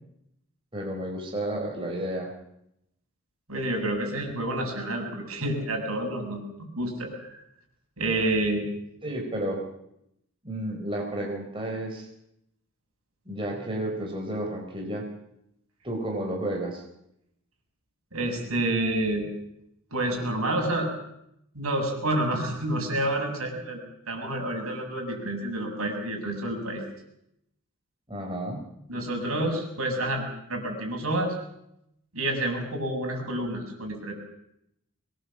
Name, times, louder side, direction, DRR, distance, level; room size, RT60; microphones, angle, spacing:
voice 1, 0.7-2.3 9.0-9.6 10.4-12.1 13.3-15.1 15.8-16.8 28.1-28.6, right 1 dB, 25° right, 0 dB, 4.3 m, -31 dB
voice 2, 3.5-6.4 6.8-7.4 8.0-8.7 18.1-19.3 19.9-20.9 21.5-23.8 24.1-26.8 28.9-31.4 32.1-34.1, right 1 dB, 75° right, 2 dB, 7.0 m, -28 dB
23.0 x 21.0 x 7.5 m, 0.79 s
head